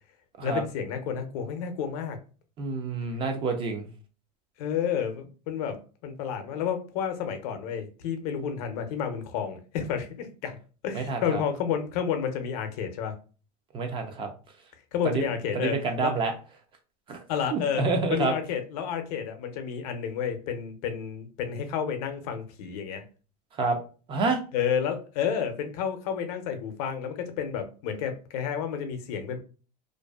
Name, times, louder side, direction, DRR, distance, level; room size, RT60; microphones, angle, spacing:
voice 1, 0.4-2.2 4.6-10.6 10.8-13.1 14.9-16.1 17.3-17.8 18.1-23.0 24.5-29.4, left 7 dB, 65° left, 0.6 m, -30 dB
voice 2, 2.6-3.9 10.9-11.4 13.7-14.3 15.0-15.3 15.5-16.3 17.1-17.2 17.5-18.3 23.6-23.8 24.1-24.4, right 4 dB, 25° right, 0.4 m, -28 dB
2.5 x 2.3 x 2.2 m
supercardioid pair, 140°, 21 cm